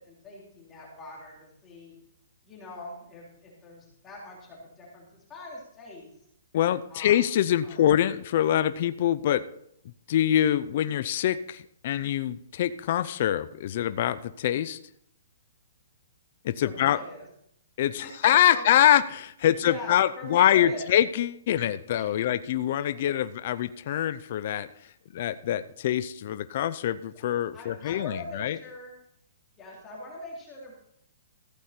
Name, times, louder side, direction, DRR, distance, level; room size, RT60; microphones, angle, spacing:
voice 1, 0.1-1.9 2.4-6.1 6.9-7.2 7.6-7.8 16.6-17.3 18.0-18.6 19.5-20.9 22.0-22.1 27.1-27.2 27.5-29.0 29.6-30.7, left 1 dB, 15° left, -4 dB, 3.3 m, -43 dB
voice 2, 6.5-9.4 10.1-14.8 16.4-17.0 17.8-28.6, left 11 dB, 45° left, 12 dB, 0.5 m, -25 dB
15.0 x 8.2 x 4.4 m, 0.71 s
hypercardioid pair, 160°, 0 cm